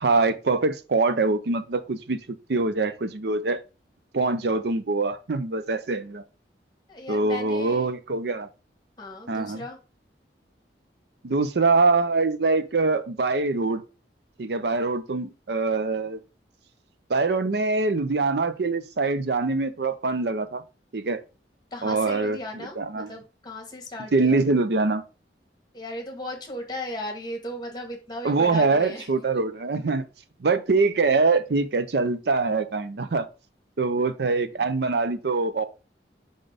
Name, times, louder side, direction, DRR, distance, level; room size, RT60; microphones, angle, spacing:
voice 1, 0.0-3.6 4.1-6.2 7.1-8.5 9.3-9.6 11.2-13.8 14.4-16.2 17.1-20.6 20.9-21.2 21.8-23.1 24.1-25.0 28.2-30.0 30.4-33.3 33.8-35.6, right 3 dB, 65° right, 0.5 m, -24 dB
voice 2, 6.9-7.9 9.0-9.8 21.7-24.4 25.7-29.1 29.9-30.1, left 1 dB, 25° left, 1.4 m, -36 dB
5.1 x 4.0 x 5.0 m
head